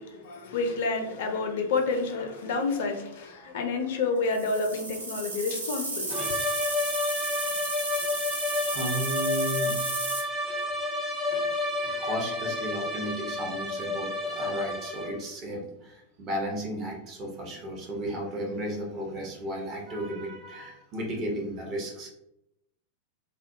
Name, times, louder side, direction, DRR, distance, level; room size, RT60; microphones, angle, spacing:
voice 1, 0.0-6.2, left 3 dB, 55° left, 4 dB, 0.4 m, -29 dB
sound 1, 4.2-10.2, right 2 dB, 75° right, 0.6 m, -33 dB
sound 2, 6.1-15.3, left 2 dB, ahead, 0.5 m, -30 dB
voice 2, 8.7-9.8 10.3-10.7 11.7-22.1, equal, 35° right, -1 dB, 0.7 m, -34 dB
2.2 x 2.1 x 2.7 m, 0.85 s
figure-of-eight pair, 90°, 0 cm